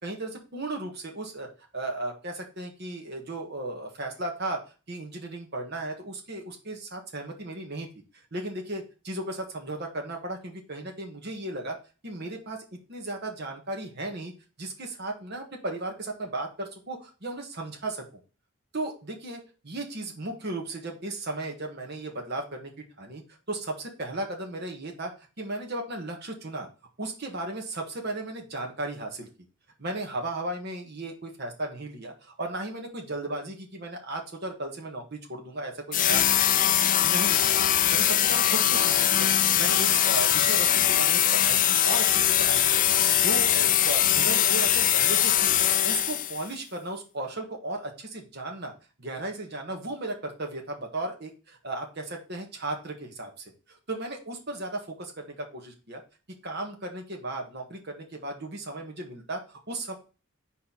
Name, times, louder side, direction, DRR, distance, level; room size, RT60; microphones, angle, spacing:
voice 1, 0.0-1.5 1.7-4.6 4.9-7.9 8.3-11.8 12.0-14.3 14.6-18.0 18.7-23.2 23.5-25.1 25.4-26.7 27.0-29.3 29.8-36.7 37.0-37.6 37.9-39.3 39.6-45.5 45.8-48.7 49.0-53.4 53.9-56.0 56.4-60.0, right 2 dB, 50° right, 1 dB, 1.5 m, -35 dB
sound 1, 35.9-46.5, left 11 dB, 40° left, 0.4 m, -22 dB
4.4 x 4.4 x 5.7 m, 0.33 s
head